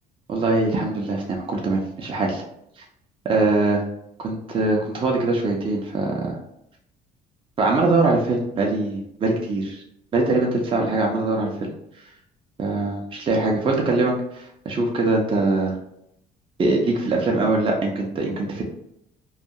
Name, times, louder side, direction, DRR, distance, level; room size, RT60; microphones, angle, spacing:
voice 1, 0.3-2.4 3.2-3.8 4.2-6.4 7.6-9.8 10.1-11.7 12.6-15.7 16.6-18.6, right 2 dB, 30° right, 0 dB, 0.5 m, -22 dB
2.3 x 2.2 x 2.7 m, 0.76 s
cardioid pair, 110°, 17 cm